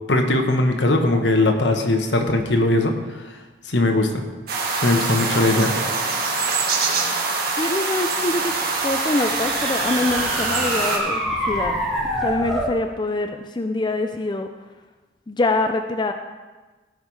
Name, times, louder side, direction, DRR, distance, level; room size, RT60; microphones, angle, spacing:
voice 1, 0.1-2.9 3.6-4.2 4.8-5.7, left 2 dB, 70° left, 4 dB, 1.2 m, -19 dB
sound 1, 4.5-11.0, right 3 dB, 55° right, 1.6 m, -24 dB
voice 2, 7.6-8.5 8.8-11.8 12.2-14.5 15.3-16.1, left 2 dB, 25° left, 6 dB, 0.5 m, -24 dB
sound 2, 8.4-12.8, equal, ahead, 1.7 m, -27 dB
16.5 x 5.6 x 4.7 m, 1.3 s
head